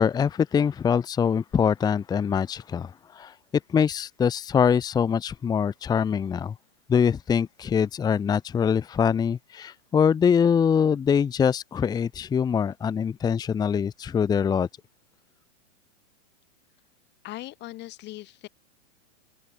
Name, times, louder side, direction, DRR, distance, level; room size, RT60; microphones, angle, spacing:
voice 1, 0.0-3.3 3.7-6.5 6.9-14.7, left 7 dB, 10° left, 1.2 m, -23 dB
voice 2, 17.2-18.5, left 17 dB, 25° left, 7.5 m, -39 dB
open air
hypercardioid pair, 155°, 39 cm